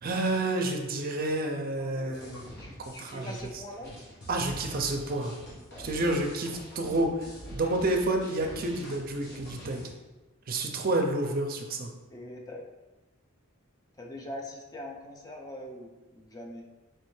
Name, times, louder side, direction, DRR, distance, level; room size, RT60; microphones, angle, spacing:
voice 1, 0.0-2.4 2.9-3.3 4.3-5.3 5.8-9.8 10.5-11.9, right 2 dB, 40° right, 3 dB, 0.5 m, -29 dB
voice 2, 1.8-3.9 7.6-7.9 12.1-12.7 14.0-16.6, left 1 dB, 15° left, 1 dB, 0.4 m, -43 dB
sound 1, 2.1-9.9, equal, 50° left, 1.2 m, -46 dB
4.5 x 3.2 x 3.1 m, 1.2 s
head